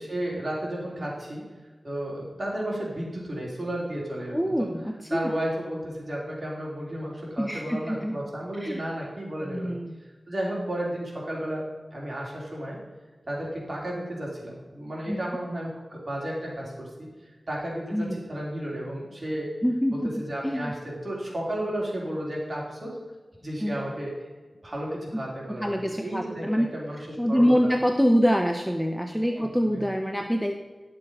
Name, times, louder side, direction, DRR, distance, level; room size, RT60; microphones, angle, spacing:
voice 1, 0.0-1.4 1.8-4.7 5.1-9.7 10.3-11.6 11.9-12.8 13.3-16.9 17.5-19.5 19.9-23.0 23.4-24.1 24.6-25.7 26.0-27.5 29.4-29.8, right 1 dB, 40° right, -4 dB, 3.7 m, -33 dB
voice 2, 4.3-5.2 7.4-8.2 8.6-8.8 9.4-10.0 15.1-15.2 17.9-18.2 19.6-20.1 20.4-20.7 23.6-23.7 25.6-26.7 27.2-30.5, equal, ahead, 4 dB, 0.7 m, -25 dB
11.0 x 6.9 x 5.3 m, 1.3 s
wide cardioid pair, 90°, 0 cm